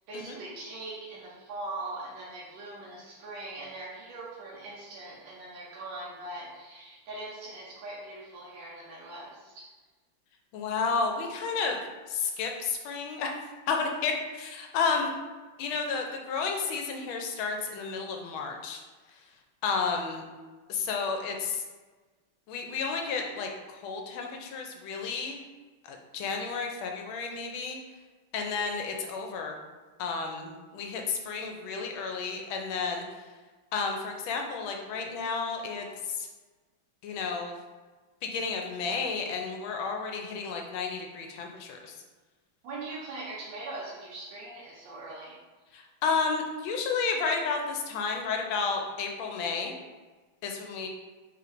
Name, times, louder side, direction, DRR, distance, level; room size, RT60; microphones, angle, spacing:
voice 1, 0.1-9.7 42.6-45.4, right 2 dB, 70° right, -6 dB, 1.3 m, -41 dB
voice 2, 10.5-11.8 12.1-13.3 13.7-15.1 15.6-18.8 19.6-20.2 20.7-21.6 22.5-25.4 25.8-27.8 28.3-29.6 30.0-33.0 33.7-36.3 37.0-37.5 38.2-41.9 45.7-49.7 50.4-50.9, left 5 dB, 75° left, 2 dB, 1.3 m, -32 dB
4.3 x 3.5 x 2.5 m, 1.3 s
omnidirectional pair, 2.4 m